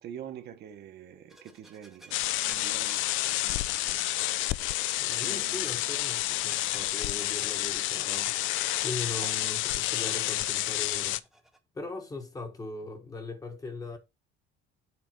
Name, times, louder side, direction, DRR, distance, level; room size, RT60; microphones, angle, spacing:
voice 1, 0.0-2.2 2.4-4.1 5.2-5.8 9.2-9.3, right 9 dB, 50° right, 1.0 m, -46 dB
sound 1, 1.3-11.6, right 1 dB, ahead, 0.8 m, -55 dB
sound 2, 2.1-11.2, left 15 dB, 65° left, 0.5 m, -29 dB
voice 2, 5.0-8.3 8.8-11.2 11.7-14.0, left 3 dB, 15° left, 1.1 m, -40 dB
7.6 x 3.4 x 5.7 m
cardioid pair, 170°, 21 cm